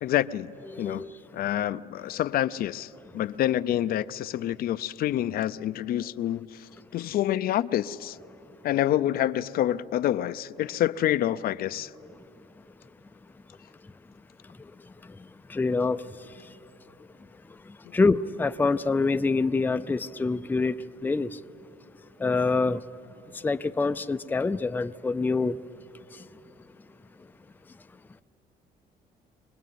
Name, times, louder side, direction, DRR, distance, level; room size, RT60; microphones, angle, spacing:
voice 1, 0.0-0.5 0.8-1.0 1.3-2.9 3.1-6.5 6.9-8.2 8.6-11.9, left 12 dB, 60° left, 0.5 m, -27 dB
voice 2, 0.7-1.1 15.5-16.0 17.9-20.8 21.0-21.4 22.2-22.8 23.4-25.6, left 3 dB, 10° left, 0.5 m, -25 dB
24.0 x 19.5 x 9.3 m
cardioid pair, 110°, 17 cm